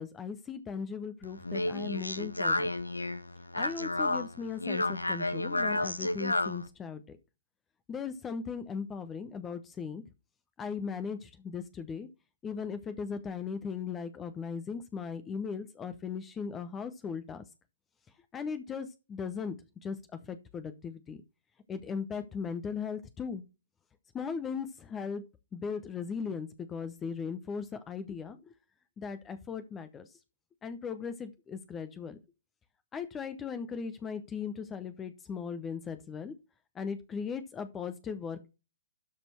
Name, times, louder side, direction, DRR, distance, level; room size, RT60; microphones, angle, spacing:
voice 1, 0.0-2.7 3.5-7.2 7.9-10.0 10.6-12.1 12.4-17.4 18.3-19.6 19.8-20.0 20.3-21.2 21.7-23.4 24.1-25.2 25.5-28.4 29.0-30.0 30.6-32.2 32.9-36.3 36.8-38.5, left 6 dB, 15° left, 11 dB, 0.8 m, -38 dB
Speech, 1.2-6.7, left 2 dB, 85° left, 0.8 m, -31 dB
12.5 x 4.4 x 4.4 m, 0.28 s
figure-of-eight pair, 120°, 0 cm